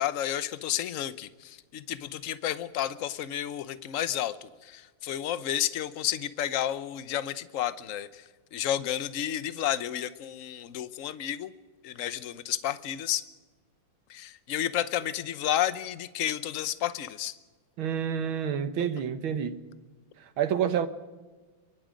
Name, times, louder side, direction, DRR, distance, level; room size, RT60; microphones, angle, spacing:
voice 1, 0.0-8.2 8.5-11.5 11.8-13.2 14.1-17.3 18.8-18.9, left 11 dB, 60° left, 0.8 m, -31 dB
voice 2, 17.8-19.6 20.4-20.9, right 8 dB, 75° right, 1.9 m, -28 dB
25.0 x 23.0 x 5.2 m
omnidirectional pair, 2.3 m